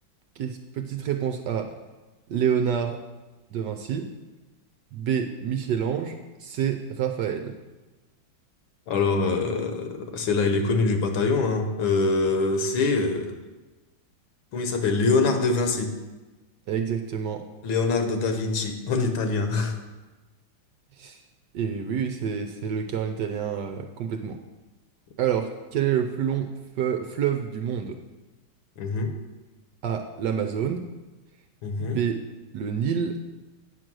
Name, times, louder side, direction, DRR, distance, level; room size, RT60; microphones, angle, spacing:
voice 1, 0.4-1.7 2.3-3.0 3.5-4.1 4.9-7.5 16.7-17.5 21.0-21.2 21.5-24.4 25.2-26.5 26.8-28.0 29.8-30.8 31.8-32.2 32.5-33.2, right 8 dB, 70° right, 6 dB, 1.1 m, -27 dB
voice 2, 8.9-13.3 14.5-15.9 17.6-19.7 28.8-29.1 31.6-32.0, left 3 dB, 75° left, 6 dB, 1.7 m, -24 dB
9.0 x 6.5 x 6.1 m, 1.2 s
omnidirectional pair, 2.3 m